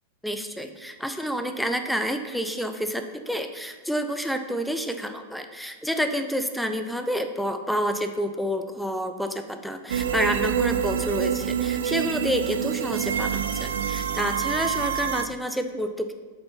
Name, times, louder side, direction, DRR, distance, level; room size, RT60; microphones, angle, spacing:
voice 1, 0.2-16.1, equal, ahead, 7 dB, 0.5 m, -29 dB
sound 1, 9.9-15.3, right 8 dB, 65° right, 0.4 m, -27 dB
7.0 x 5.2 x 5.8 m, 1.4 s
figure-of-eight pair, 95°, 0 cm